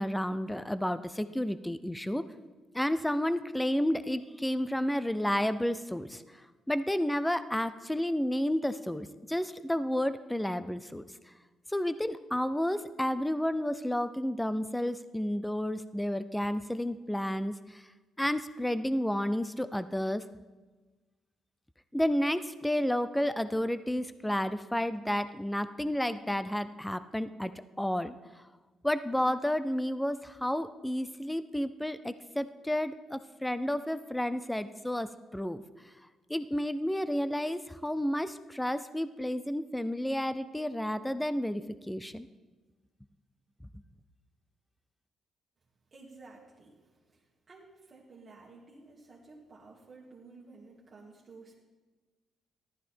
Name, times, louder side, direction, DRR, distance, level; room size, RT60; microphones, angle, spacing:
voice 1, 0.0-2.2 2.7-6.2 6.7-11.0 11.7-17.8 18.2-20.2 21.9-27.5 27.8-28.1 28.8-35.6 36.3-42.3, left 1 dB, 5° left, 13 dB, 0.5 m, -31 dB
voice 2, 45.9-51.5, right 3 dB, 40° right, -4 dB, 2.1 m, -53 dB
14.0 x 12.5 x 4.4 m, 1.3 s
cardioid pair, 90°, 0 cm